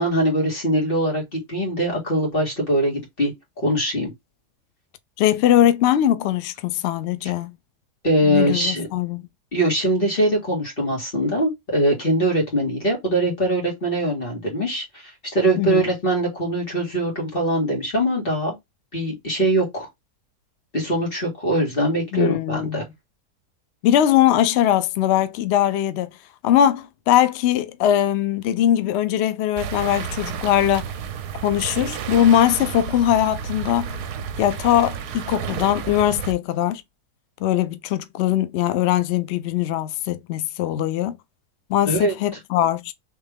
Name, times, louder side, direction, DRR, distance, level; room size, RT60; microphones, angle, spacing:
voice 1, 0.0-3.3 3.6-4.1 8.0-8.9 9.5-18.6 18.9-19.9 20.7-22.8 41.9-42.1, right 1 dB, 35° left, 2.1 m, -22 dB
voice 2, 5.2-7.6 8.2-9.2 15.6-15.9 22.1-22.9 23.8-26.1 26.4-30.9 31.4-34.0 34.4-36.8 37.4-41.2 41.7-42.9, left 11 dB, 85° left, 0.5 m, -21 dB
sound 1, 29.6-36.3, right 7 dB, 80° right, 1.1 m, -31 dB
3.6 x 3.1 x 3.3 m
omnidirectional pair, 1.7 m